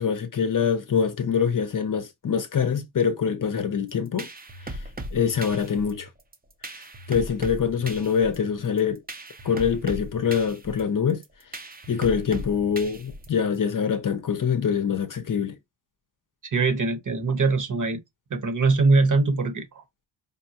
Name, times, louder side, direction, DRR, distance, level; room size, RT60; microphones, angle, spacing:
voice 1, 0.0-4.3 4.6-4.8 5.1-6.1 7.1-9.0 9.4-11.2 11.9-15.6, left 7 dB, 40° left, 0.7 m, -24 dB
sound 1, 3.9-13.6, right 1 dB, 20° right, 0.7 m, -38 dB
voice 2, 16.4-18.0 18.3-19.8, right 3 dB, 40° right, 1.1 m, -22 dB
5.3 x 2.1 x 2.9 m
cardioid pair, 65°, 48 cm